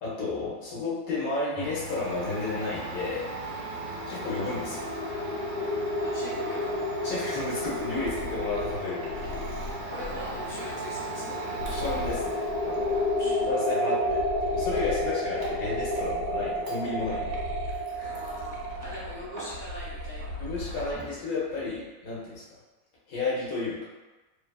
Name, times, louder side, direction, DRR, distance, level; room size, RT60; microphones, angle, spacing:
voice 1, 0.0-3.3 4.1-4.9 7.0-9.5 11.7-12.9 13.5-17.4 17.6-18.2 20.4-22.4 23.1-23.8, left 3 dB, 70° left, -7 dB, 1.3 m, -32 dB
Domestic sounds home sounds, 1.6-19.9 20.2-21.2, right 2 dB, 60° right, 0.4 m, -40 dB
voice 2, 3.4-4.1 6.0-6.7 9.9-11.4 12.9-13.4 18.0-20.7, left 1 dB, 50° left, -12 dB, 1.1 m, -42 dB
sound 1, 3.5-20.3, left 1 dB, 25° left, 0.9 m, -32 dB
sound 2, 7.6-13.6 14.0-21.0 21.4-22.0, left 2 dB, 90° right, 1.1 m, -40 dB
3.0 x 2.4 x 2.2 m, 1.2 s
omnidirectional pair, 1.6 m